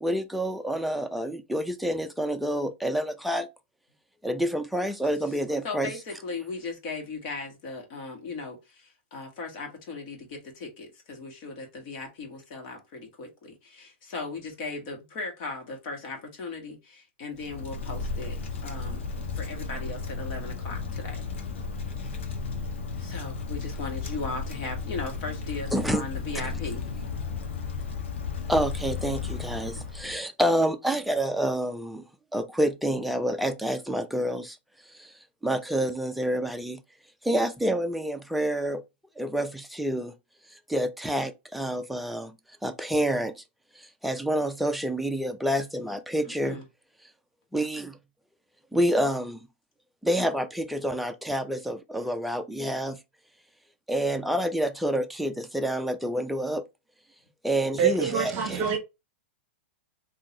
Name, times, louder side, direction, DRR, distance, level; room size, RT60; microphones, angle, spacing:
voice 1, 0.0-3.5 4.2-5.9 25.7-26.0 28.5-32.0 32.3-34.6 34.9-35.1 35.4-36.8 37.2-38.8 39.2-40.1 40.7-42.3 42.6-43.4 43.8-46.6 47.5-48.0 48.7-49.4 50.0-53.0 53.9-56.6 57.4-58.7, equal, ahead, 0.4 m, -28 dB
voice 2, 5.6-18.4 18.6-19.0 19.3-21.2 23.0-26.9 29.8-30.2 46.2-46.6, left 3 dB, 50° left, 1.7 m, -38 dB
Wind, 17.3-30.2, left 4 dB, 75° left, 1.1 m, -34 dB
voice 3, 57.8-58.8, right 7 dB, 35° right, 0.9 m, -25 dB
3.7 x 2.7 x 2.9 m
hypercardioid pair, 130°, 6 cm